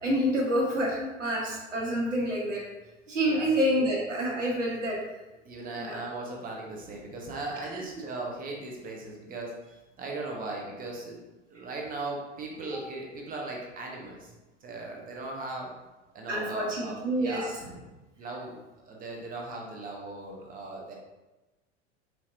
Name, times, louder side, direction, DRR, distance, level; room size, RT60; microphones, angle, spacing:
voice 1, 0.0-2.6 3.1-5.0 5.8-6.0 16.3-17.4, equal, 80° right, -3 dB, 1.2 m, -27 dB
voice 2, 3.2-3.6 5.4-9.5 10.0-11.2 11.5-14.3 14.6-15.7 16.1-17.8 18.2-18.6 18.8-20.9, right 2 dB, 25° right, -1 dB, 0.8 m, -38 dB
4.4 x 2.9 x 2.6 m, 1.1 s
figure-of-eight pair, 85°, 37 cm